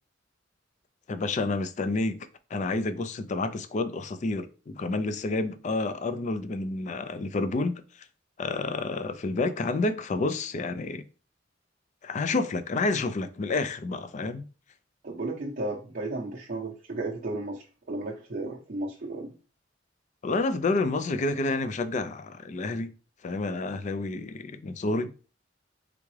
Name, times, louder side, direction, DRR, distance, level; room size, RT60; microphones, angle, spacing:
voice 1, 1.1-7.8 8.4-11.0 12.0-14.4 20.2-22.9 23.2-25.1, left 3 dB, 40° left, 0.4 m, -29 dB
voice 2, 15.0-19.3, right 2 dB, 50° right, 0.6 m, -34 dB
3.7 x 3.5 x 3.1 m
head